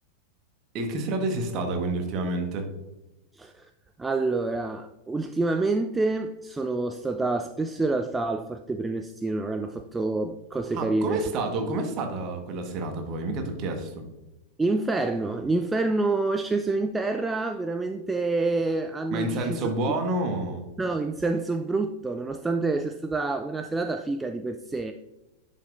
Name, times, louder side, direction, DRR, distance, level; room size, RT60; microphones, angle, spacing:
voice 1, 0.7-2.7 10.7-14.0 19.1-20.6, right 2 dB, 35° right, 5 dB, 1.3 m, -29 dB
voice 2, 4.0-11.2 14.6-19.7 20.8-24.9, right 3 dB, 10° right, 6 dB, 0.3 m, -27 dB
10.5 x 5.5 x 2.5 m, 1.0 s
figure-of-eight pair, 90°, 0 cm